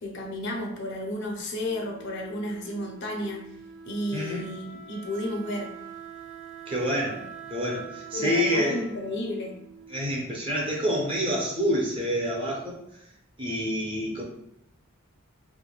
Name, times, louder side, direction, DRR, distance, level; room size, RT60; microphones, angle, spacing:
voice 1, 0.0-3.5 3.9-5.7 8.1-9.6, left 1 dB, 50° left, 1 dB, 0.5 m, -32 dB
Wind instrument woodwind instrument, 1.6-10.4, right 6 dB, 70° right, 0.3 m, -45 dB
voice 2, 4.1-4.4 6.7-7.2 7.5-8.8 9.9-12.8 13.4-14.2, equal, 25° right, -3 dB, 0.6 m, -27 dB
3.2 x 2.1 x 2.2 m, 0.79 s
head